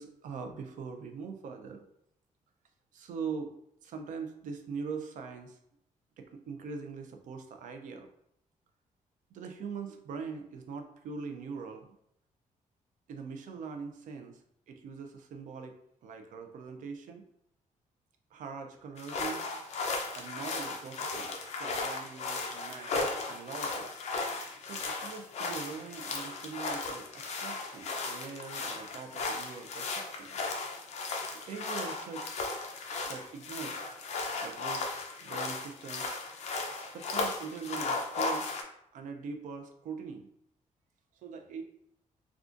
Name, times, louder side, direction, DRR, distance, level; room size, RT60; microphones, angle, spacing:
voice 1, 0.0-1.8 2.9-3.5 3.8-5.6 6.2-8.1 9.3-12.0 13.1-15.8 16.0-17.2 18.3-19.4 20.1-23.9 24.6-30.4 31.2-32.3 33.1-33.9 34.4-34.9 35.2-36.1 36.9-38.5 38.9-40.3 41.2-41.6, right 5 dB, 70° right, 5 dB, 0.4 m, -42 dB
sound 1, 19.0-38.6, left 3 dB, 55° left, 0.5 m, -36 dB
3.6 x 2.3 x 2.5 m, 0.73 s
wide cardioid pair, 180°, 14 cm